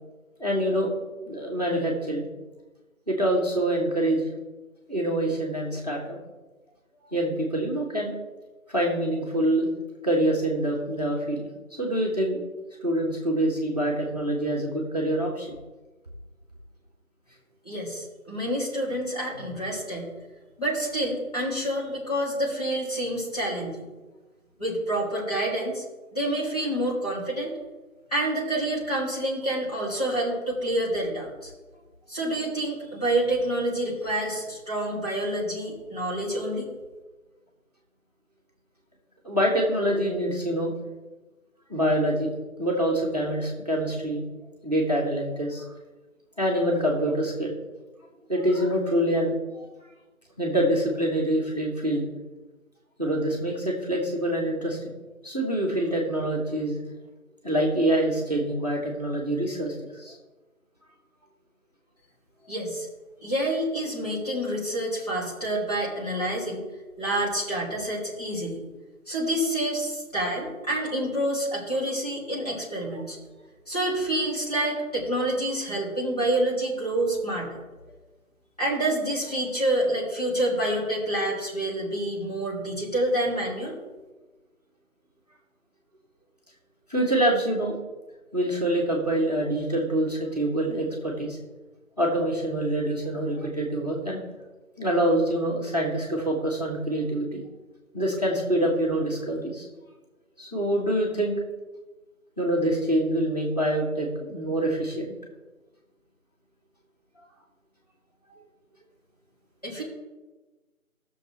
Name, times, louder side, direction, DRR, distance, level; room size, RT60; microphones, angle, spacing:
voice 1, 0.4-1.0 1.3-2.3 3.1-4.3 4.9-6.2 7.0-8.1 8.7-9.7 10.0-12.4 12.8-15.5 39.2-40.7 41.7-42.3 42.6-44.2 44.6-45.6 46.4-47.5 48.3-49.7 50.4-52.0 53.0-54.9 55.2-56.8 57.4-60.2 86.9-87.8 88.3-91.4 92.0-94.2 94.8-97.4 97.9-99.7 100.4-101.4 102.4-105.1, right 1 dB, 30° right, -3 dB, 1.4 m, -25 dB
voice 2, 17.6-20.1 20.6-23.8 24.6-25.8 26.1-27.5 28.1-31.5 32.1-36.7 62.5-62.9 63.2-66.6 67.0-68.6 69.1-73.2 73.7-77.6 78.6-83.8 109.6-109.8, right 1 dB, 25° left, -6 dB, 2.7 m, -28 dB
15.0 x 6.6 x 3.3 m, 1.2 s
figure-of-eight pair, 170°, 43 cm